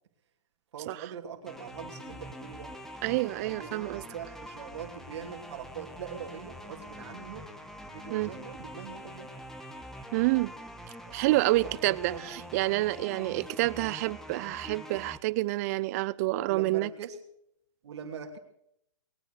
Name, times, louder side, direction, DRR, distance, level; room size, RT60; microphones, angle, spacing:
voice 1, 0.7-2.7 3.4-7.5 7.9-9.3 11.1-12.7 13.0-13.5 16.4-17.2 17.8-18.4, right 7 dB, 60° right, 2.8 m, -43 dB
sound 1, 1.5-15.2, equal, ahead, 1.1 m, -45 dB
voice 2, 3.0-4.0 8.1-8.3 10.1-10.5 11.1-16.9, right 19 dB, 30° right, 0.5 m, -28 dB
20.5 x 9.2 x 6.6 m
hypercardioid pair, 140°, 16 cm